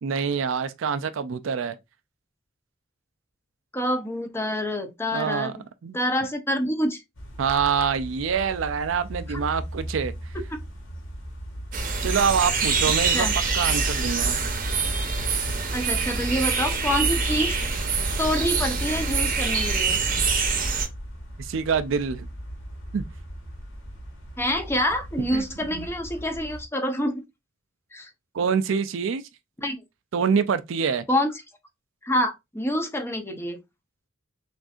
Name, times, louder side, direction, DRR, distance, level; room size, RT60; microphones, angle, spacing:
voice 1, 0.0-1.8 5.1-5.5 5.8-6.0 7.4-10.1 12.0-13.3 13.5-14.5 21.4-22.3 22.9-23.0 25.3-25.4 25.7-25.9 28.3-29.2 30.1-31.0, right 6 dB, 70° right, 0.4 m, -25 dB
voice 2, 3.7-5.6 5.9-7.0 9.3-9.4 13.1-13.3 15.7-17.6 18.2-20.0 24.4-27.2 27.9-28.1 29.6-29.8 31.1-31.3 32.0-33.6, left 1 dB, 10° left, 0.6 m, -27 dB
sound 1, 7.1-26.6, equal, 65° left, 1.8 m, -38 dB
sound 2, 11.7-20.9, right 4 dB, 40° right, 0.8 m, -25 dB
6.1 x 2.6 x 2.4 m
head